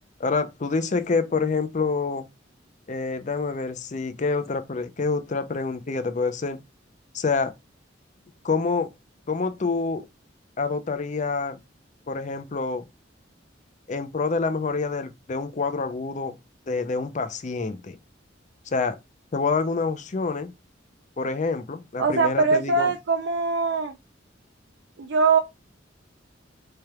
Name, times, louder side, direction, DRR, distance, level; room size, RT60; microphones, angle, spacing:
voice 1, 0.2-2.3 2.9-6.6 7.1-7.5 8.4-8.9 9.3-10.1 10.6-11.6 12.1-12.8 13.9-16.4 16.7-18.0 18.7-19.0 19.3-20.5 21.2-22.9, left 4 dB, 40° left, 0.5 m, -27 dB
voice 2, 22.0-24.0 25.0-25.4, right 4 dB, 65° right, 0.5 m, -22 dB
4.3 x 3.3 x 2.2 m
head